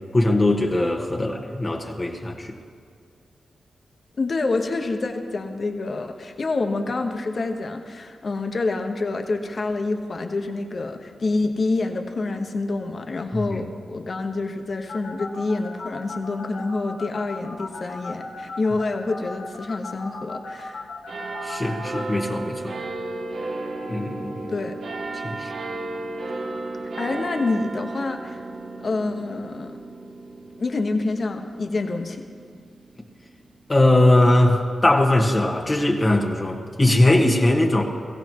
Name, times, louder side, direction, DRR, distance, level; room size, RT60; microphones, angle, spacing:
voice 1, 0.1-2.6 13.5-13.6 21.4-22.8 23.9-24.5 25.2-25.5 33.7-37.8, left 1 dB, 35° left, 0 dB, 1.8 m, -20 dB
voice 2, 4.2-20.9 24.5-24.8 27.0-28.4 28.8-29.8 30.6-32.3, left 3 dB, 55° left, 5 dB, 1.3 m, -27 dB
sound 1, 14.9-22.0, left 3 dB, 85° left, 2.2 m, -36 dB
sound 2, 21.1-33.9 34.6-34.7, right 2 dB, 80° right, 2.2 m, -34 dB
22.0 x 15.5 x 3.1 m, 2.2 s
supercardioid pair, 40°, 0 cm